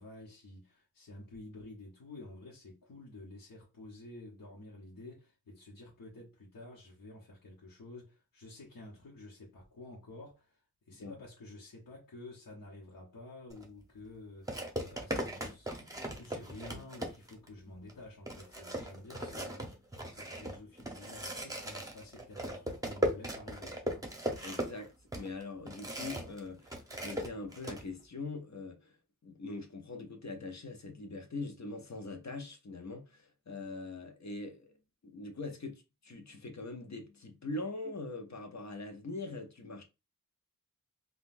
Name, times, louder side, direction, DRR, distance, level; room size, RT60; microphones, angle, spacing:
voice 1, 0.0-10.6 10.9-19.7 20.1-24.1, left 2 dB, 70° left, 1.0 m, -50 dB
sound 1, 13.5-13.7 14.5-17.5 17.9-18.0 18.3-26.4 26.7-27.8, equal, 10° right, 0.8 m, -38 dB
voice 2, 24.4-29.0 29.2-34.7 35.0-39.8, left 3 dB, 55° left, 0.7 m, -42 dB
3.8 x 2.3 x 2.5 m
wide cardioid pair, 80°, 34 cm